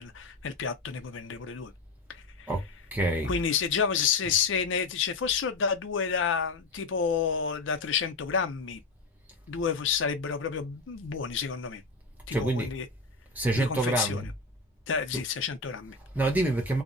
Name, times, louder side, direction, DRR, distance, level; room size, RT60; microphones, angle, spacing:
voice 1, 0.0-1.7 2.4-2.5 3.2-8.8 9.5-11.8 12.3-12.9 13.5-14.3 14.9-16.0, left 6 dB, 80° left, 0.5 m, -29 dB
voice 2, 2.9-3.4 12.3-12.7 13.4-14.3 15.1-15.2 16.1-16.8, right 2 dB, 10° right, 0.6 m, -27 dB
2.7 x 2.0 x 2.6 m
head